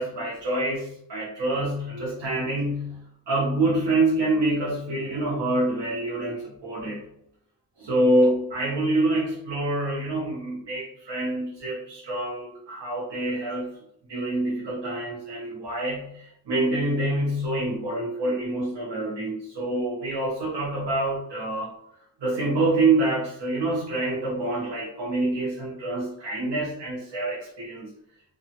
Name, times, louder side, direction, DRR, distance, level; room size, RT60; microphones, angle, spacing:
voice 1, 0.0-3.0 3.3-7.0 7.8-13.8 14.1-21.7 22.2-27.9, right 2 dB, 75° right, -4 dB, 0.8 m, -26 dB
2.8 x 2.3 x 2.8 m, 0.75 s
wide cardioid pair, 145°, 42 cm